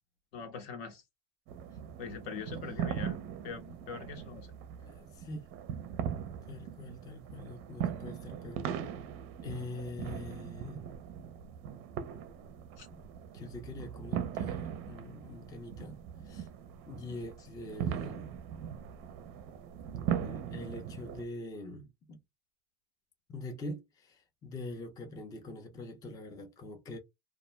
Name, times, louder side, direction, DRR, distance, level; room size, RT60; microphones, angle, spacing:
voice 1, 0.3-1.0 2.0-3.2 3.4-4.5 12.8-12.9, left 5 dB, 70° left, 1.0 m, -42 dB
sound 1, 1.5-21.2, right 9 dB, 45° right, 0.5 m, -40 dB
voice 2, 4.8-5.5 6.4-8.9 9.4-10.8 12.9-13.0 13.3-16.0 16.2-16.5 16.9-18.4 20.2-22.2 23.3-27.0, left 2 dB, 10° left, 0.4 m, -44 dB
2.4 x 2.1 x 3.0 m
supercardioid pair, 140°, 31 cm